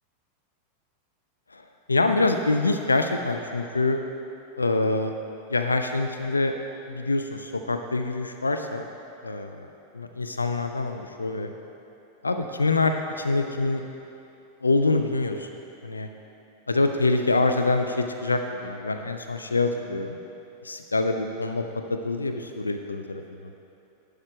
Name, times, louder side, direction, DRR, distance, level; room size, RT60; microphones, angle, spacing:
voice 1, 1.9-4.0 4.6-5.1 5.5-6.5 6.9-8.9 9.2-9.5 10.0-11.5 12.2-13.8 14.6-15.5 15.8-16.1 16.7-20.2 20.7-21.6 21.9-23.5, left 3 dB, 80° left, 6 dB, 0.4 m, -25 dB
11.5 x 5.0 x 4.4 m, 2.9 s
figure-of-eight pair, 90°, 0 cm